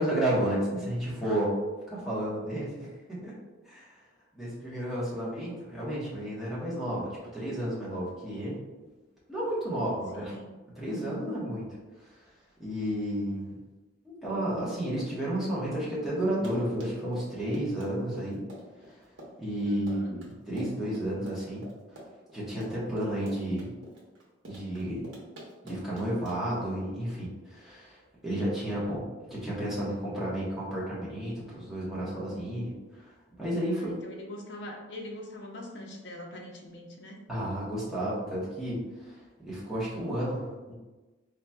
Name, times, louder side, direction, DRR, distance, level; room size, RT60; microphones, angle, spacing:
voice 1, 0.0-1.5 1.9-3.3 3.7-3.9 4.4-8.6 9.3-10.4 10.7-11.7 12.6-13.5 14.0-18.4 18.9-19.0 19.4-21.6 22.3-23.7 24.4-25.1 25.6-28.0 28.2-33.1 33.4-33.9 37.3-39.1 39.4-40.7, right 1 dB, ahead, -9 dB, 1.1 m, -32 dB
voice 2, 9.7-10.5 19.7-20.2 28.7-29.0 33.7-37.2, left 1 dB, 65° left, 0 dB, 0.7 m, -44 dB
Run, 16.2-26.6, equal, 85° right, 0.9 m, -48 dB
4.1 x 2.9 x 2.3 m, 1.2 s
head